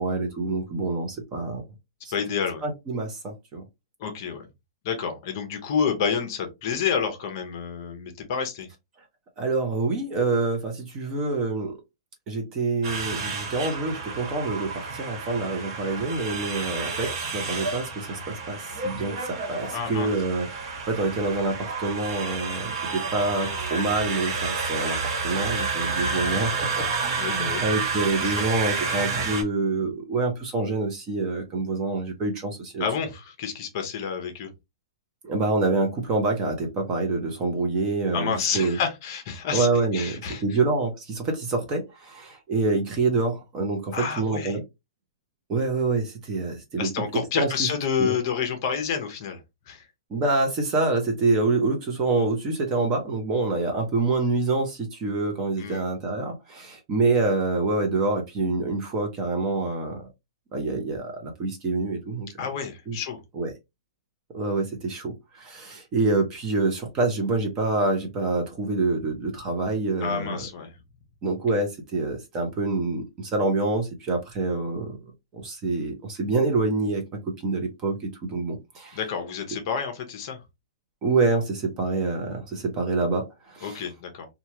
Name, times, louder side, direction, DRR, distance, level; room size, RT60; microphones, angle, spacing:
voice 1, 0.0-1.6 2.0-2.1 2.6-3.6 9.4-11.8 12.3-32.8 35.2-38.8 39.5-44.6 45.5-47.7 48.0-48.1 50.1-60.1 60.5-62.5 62.9-63.0 63.3-63.5 64.3-70.4 71.2-75.0 75.3-79.0 81.0-83.8, right 3 dB, 20° right, 0.7 m, -26 dB
voice 2, 2.1-2.6 4.0-4.4 4.8-8.7 19.7-20.1 26.0-26.3 27.2-27.6 28.2-28.4 32.8-34.5 38.1-39.7 39.9-40.4 43.9-44.6 46.8-49.4 49.7-49.9 55.6-55.8 62.4-63.2 70.0-70.7 78.9-80.4 83.6-84.3, left 7 dB, 35° left, 0.8 m, -29 dB
sound 1, 12.8-29.4, right 4 dB, 50° right, 1.3 m, -30 dB
3.1 x 2.3 x 2.8 m
hypercardioid pair, 170°, 3 cm